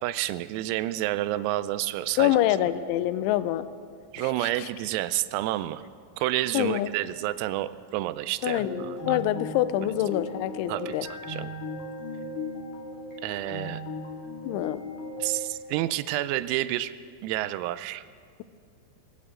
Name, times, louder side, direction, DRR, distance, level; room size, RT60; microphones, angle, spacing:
voice 1, 0.0-2.4 4.1-5.8 6.2-9.2 10.7-11.5 13.2-13.8 15.2-16.9 17.2-18.0, right 15 dB, 90° right, 14 dB, 3.3 m, -29 dB
voice 2, 2.2-3.7 4.2-4.7 6.5-6.9 8.4-11.1 14.4-14.8, left 13 dB, 90° left, 13 dB, 2.7 m, -26 dB
sound 1, 8.6-15.4, left 2 dB, 45° left, 2.8 m, -37 dB
23.5 x 16.5 x 3.7 m, 2.2 s
omnidirectional pair, 6.0 m